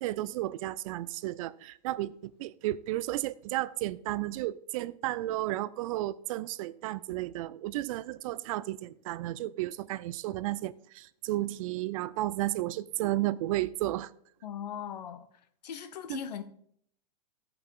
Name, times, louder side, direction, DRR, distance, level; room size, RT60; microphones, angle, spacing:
voice 1, 0.0-14.1, right 16 dB, 55° right, 0.5 m, -33 dB
voice 2, 14.4-15.3 15.6-16.4, left 8 dB, 80° left, 1.0 m, -38 dB
14.0 x 5.6 x 3.8 m
hypercardioid pair, 130°, 21 cm